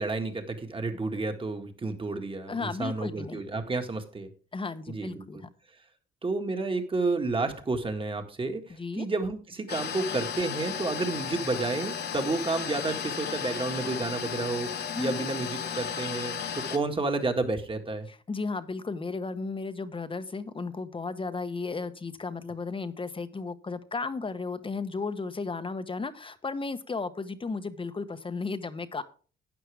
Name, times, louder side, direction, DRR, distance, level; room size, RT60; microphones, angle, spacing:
voice 1, 0.0-4.3 4.9-5.4 6.2-18.1, right 3 dB, 25° right, 6 dB, 1.9 m, -31 dB
voice 2, 2.5-3.4 4.5-5.5 8.8-9.1 14.9-15.3 18.1-29.0, left 4 dB, 25° left, 11 dB, 1.1 m, -34 dB
sound 1, 9.7-16.8, left 8 dB, 55° left, 1.5 m, -34 dB
12.5 x 9.2 x 3.5 m, 0.38 s
cardioid pair, 90°, 20 cm